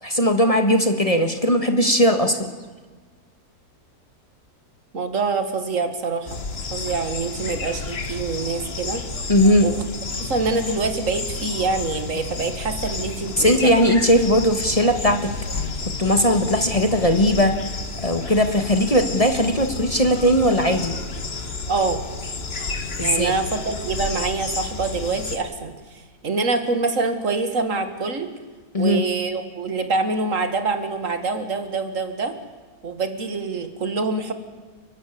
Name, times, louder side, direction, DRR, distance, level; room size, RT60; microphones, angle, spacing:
voice 1, 0.0-2.5 9.3-9.7 13.4-15.3 16.0-17.5 18.0-21.0 23.0-23.3 28.7-29.0, equal, 25° left, 6 dB, 1.6 m, -18 dB
voice 2, 4.9-6.4 6.7-9.0 9.6-9.8 10.2-13.7 21.7-22.0 23.0-25.7 26.2-28.3 28.8-32.4 32.8-34.3, right 4 dB, 55° right, 8 dB, 2.4 m, -25 dB
sound 1, 6.3-25.4, left 4 dB, 40° left, 1.7 m, -31 dB
30.0 x 12.0 x 8.7 m, 1.4 s
omnidirectional pair, 1.7 m